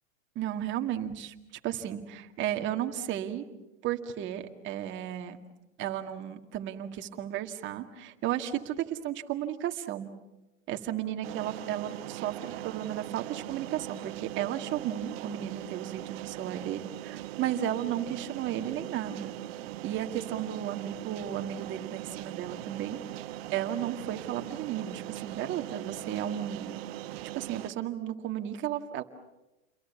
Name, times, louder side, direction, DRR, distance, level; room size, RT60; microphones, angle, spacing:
voice 1, 0.4-1.3 1.6-3.4 3.8-5.4 5.8-10.1 10.7-19.3 19.8-23.0 23.5-26.8 27.3-29.0, right 11 dB, 30° right, 5 dB, 2.1 m, -34 dB
sound 1, 11.2-27.7, right 14 dB, 50° right, 1.4 m, -40 dB
29.5 x 22.5 x 7.1 m, 1.0 s
hypercardioid pair, 140°, 38 cm